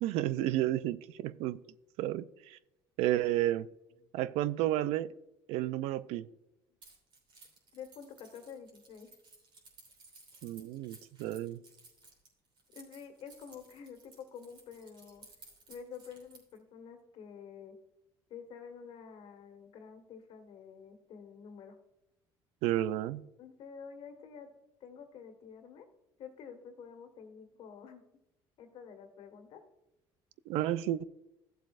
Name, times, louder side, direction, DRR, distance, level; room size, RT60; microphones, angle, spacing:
voice 1, 0.0-1.6 2.0-2.6 3.0-3.7 4.1-5.1 5.5-6.3 10.4-11.6 22.6-23.3 30.5-31.0, right 14 dB, 85° right, 17 dB, 0.4 m, -31 dB
Keys jangling, 6.8-16.6, right 3 dB, 55° right, 3.2 m, -58 dB
voice 2, 7.7-9.1 12.7-15.2 15.7-17.8 18.3-21.8 23.4-24.5 24.8-25.9 26.2-28.1 28.6-29.6, left 6 dB, 70° left, 7 dB, 1.6 m, -49 dB
14.5 x 7.5 x 2.5 m, 0.89 s
cardioid pair, 90°, 10 cm